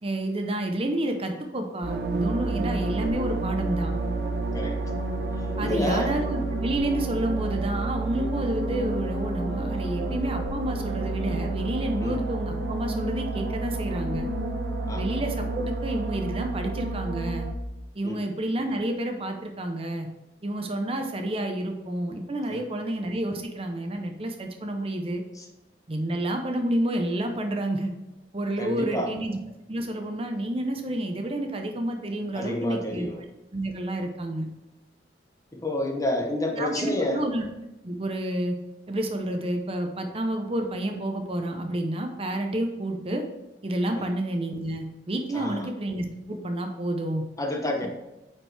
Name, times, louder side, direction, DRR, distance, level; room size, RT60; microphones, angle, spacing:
voice 1, 0.0-3.9 5.6-14.3 14.9-17.5 17.9-20.1 20.4-25.2 25.9-27.9 28.3-29.4 29.7-33.1 33.5-34.5 36.6-37.5 37.8-38.6 38.9-43.2 43.6-47.3, right 1 dB, 35° right, 4 dB, 0.7 m, -29 dB
sound 1, 1.8-17.5, right 2 dB, 70° right, 1.0 m, -29 dB
voice 2, 5.6-6.1 12.0-12.1 14.9-15.1 18.0-18.2 22.5-22.6 25.4-25.5 28.6-29.1 32.3-33.2 35.5-37.2 44.0-44.1 45.3-45.7 47.4-47.9, left 1 dB, 20° left, 2 dB, 0.9 m, -29 dB
8.7 x 4.5 x 3.4 m, 0.98 s
head